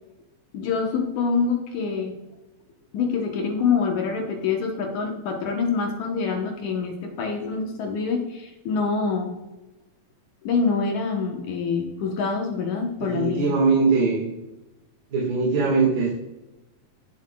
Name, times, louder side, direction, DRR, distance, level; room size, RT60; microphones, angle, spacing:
voice 1, 0.5-2.1 2.9-9.3 10.4-13.5, left 5 dB, 65° left, 2 dB, 2.2 m, -25 dB
voice 2, 12.7-14.3 15.1-16.1, right 4 dB, 90° right, -3 dB, 3.6 m, -22 dB
19.0 x 7.7 x 2.3 m, 1.0 s
omnidirectional pair, 4.1 m